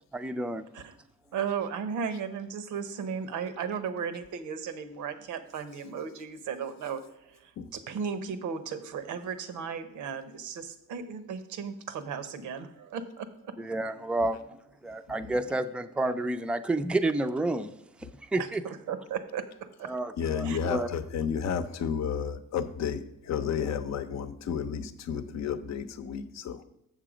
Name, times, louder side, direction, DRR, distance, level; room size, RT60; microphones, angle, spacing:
voice 1, 0.1-0.7 13.6-14.4 14.8-17.7 18.0-18.6 19.8-20.9, right 2 dB, 5° right, 9 dB, 0.4 m, -30 dB
voice 2, 1.3-7.0 7.3-13.6 18.4-19.9 20.4-20.6 21.1-21.2, right 6 dB, 80° right, 11 dB, 0.8 m, -35 dB
voice 3, 20.2-26.6, left 7 dB, 60° left, 11 dB, 0.7 m, -32 dB
7.5 x 6.8 x 5.0 m, 0.82 s
cardioid pair, 90°, 30 cm